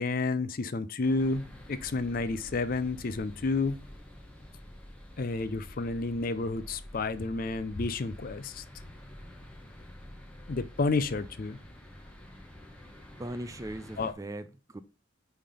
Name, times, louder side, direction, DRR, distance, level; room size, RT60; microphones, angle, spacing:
voice 1, 0.0-3.8 5.2-8.6 10.5-11.6 14.0-14.1, left 3 dB, 45° left, 0.5 m, -30 dB
sound 1, 1.0-14.1, left 1 dB, 5° left, 0.9 m, -48 dB
voice 2, 13.2-14.8, right 1 dB, 15° right, 0.4 m, -39 dB
5.6 x 3.4 x 5.5 m
head